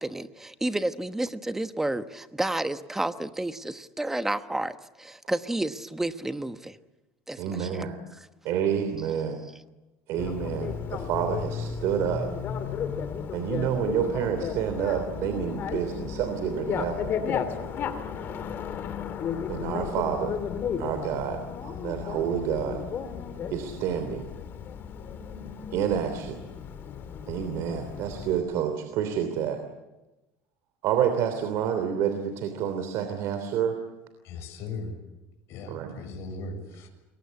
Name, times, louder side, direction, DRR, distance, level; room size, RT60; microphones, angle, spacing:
voice 1, 0.0-6.8 7.3-7.9, right 1 dB, 5° right, 10 dB, 1.1 m, -31 dB
voice 2, 7.4-8.0 8.4-9.4 10.1-12.3 13.3-17.1 19.5-20.4 20.8-22.8 23.5-24.2 25.7-26.4 27.3-29.6 30.8-33.8 35.7-36.0, right 8 dB, 60° right, 8 dB, 3.2 m, -28 dB
Bicycle, 10.2-28.4, left 7 dB, 40° left, 2.8 m, -34 dB
voice 3, 34.2-34.9 35.5-36.9, left 3 dB, 55° left, 4 dB, 6.9 m, -38 dB
28.0 x 23.0 x 8.5 m, 1.0 s
cardioid pair, 140°, 6 cm